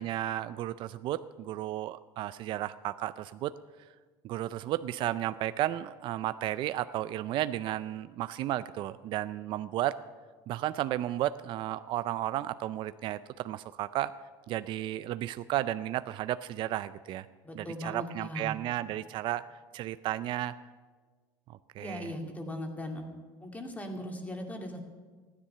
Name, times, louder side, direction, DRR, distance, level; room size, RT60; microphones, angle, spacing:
voice 1, 0.0-3.5 4.2-10.0 10.5-14.1 14.5-17.3 17.5-19.4 19.7-20.5 21.5-22.1, right 13 dB, 50° right, 13 dB, 0.4 m, -33 dB
voice 2, 17.4-18.6 21.8-23.0 23.4-24.8, left 1 dB, 15° left, 3 dB, 2.2 m, -39 dB
15.0 x 10.0 x 6.8 m, 1.5 s
supercardioid pair, 110°, 11 cm